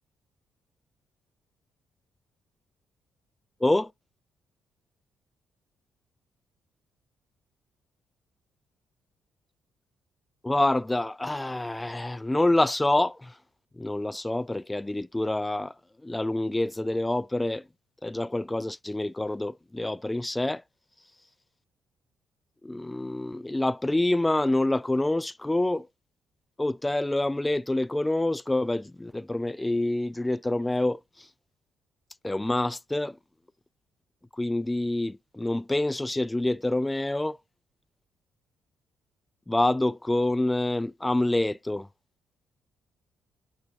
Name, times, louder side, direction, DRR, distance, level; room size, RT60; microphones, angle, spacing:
voice 1, 10.4-13.3 13.8-15.7 16.0-17.6 18.0-20.6 22.6-25.9 26.6-31.0 32.2-33.2 34.4-37.4 39.5-41.9, left 1 dB, 10° left, 0.3 m, -27 dB
6.7 x 5.9 x 2.6 m
cardioid pair, 90°, 0 cm